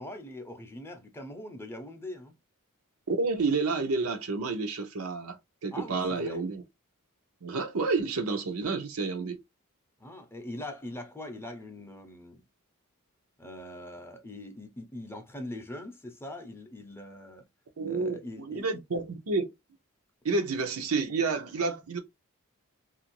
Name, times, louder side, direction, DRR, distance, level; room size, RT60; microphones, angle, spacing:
voice 1, 0.0-2.3 5.7-6.4 10.0-12.4 13.4-17.4 17.8-18.7, left 1 dB, 10° left, 0.6 m, -42 dB
voice 2, 3.1-6.6 7.4-9.4 17.8-19.5 20.2-22.0, right 4 dB, 75° right, 0.7 m, -30 dB
2.9 x 2.5 x 2.9 m
head